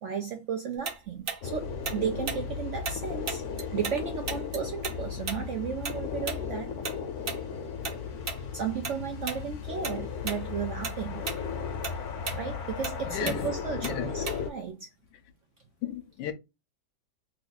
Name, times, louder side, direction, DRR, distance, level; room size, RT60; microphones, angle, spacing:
voice 1, 0.0-6.7 8.5-11.2 12.3-14.9, right 7 dB, 80° right, 0.6 m, -34 dB
Tick-tock, 0.8-4.0 4.3-9.0 9.3-9.5 9.8-10.4 10.7-14.7, right 4 dB, 45° right, 0.8 m, -36 dB
sound 1, 1.4-14.5, left 6 dB, 70° left, 1.2 m, -36 dB
voice 2, 13.1-13.5 13.8-14.1 15.8-16.3, left 11 dB, 90° left, 1.2 m, -34 dB
3.3 x 2.4 x 3.8 m
omnidirectional pair, 1.8 m